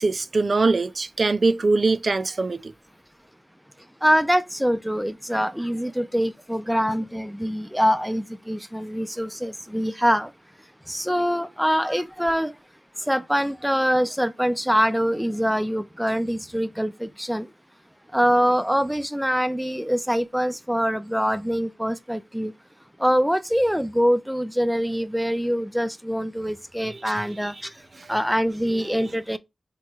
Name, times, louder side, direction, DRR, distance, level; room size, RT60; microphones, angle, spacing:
voice 1, 0.0-2.7 26.8-27.2 28.0-28.1 28.8-29.0, right 3 dB, 55° right, 0.4 m, -23 dB
voice 2, 4.0-10.3 10.9-12.5 13.1-17.5 18.1-22.5 23.0-27.5 28.1-29.4, equal, ahead, 0.5 m, -24 dB
3.4 x 3.1 x 4.5 m
wide cardioid pair, 70°, 0 cm